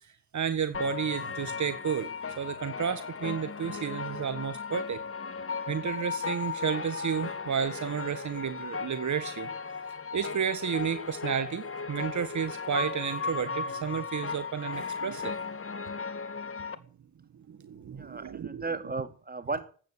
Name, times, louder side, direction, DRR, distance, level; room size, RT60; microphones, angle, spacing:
voice 1, 0.3-2.1 2.4-5.0 5.7-9.5 10.1-15.3 17.5-18.6, right 7 dB, 60° right, 1.6 m, -32 dB
sound 1, 0.7-16.8, left 5 dB, 40° left, 2.0 m, -36 dB
voice 2, 17.9-19.6, right 3 dB, 30° right, 2.8 m, -35 dB
13.5 x 9.1 x 9.7 m
supercardioid pair, 50°, 33 cm